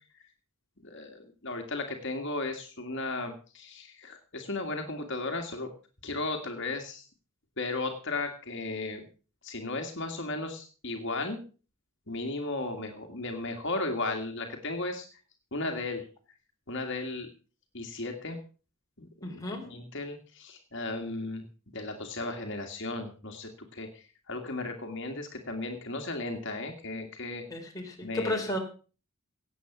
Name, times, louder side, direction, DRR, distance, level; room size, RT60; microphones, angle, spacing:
voice 1, 0.8-5.7 6.0-7.1 7.6-9.1 9.4-11.4 12.1-15.0 15.5-16.1 16.7-17.3 17.7-18.4 19.0-27.4 28.0-28.4, left 2 dB, 60° left, 4 dB, 2.0 m, -35 dB
voice 2, 19.2-19.6 27.5-28.6, left 1 dB, 15° left, 0 dB, 3.6 m, -33 dB
18.0 x 8.1 x 6.0 m, 0.38 s
head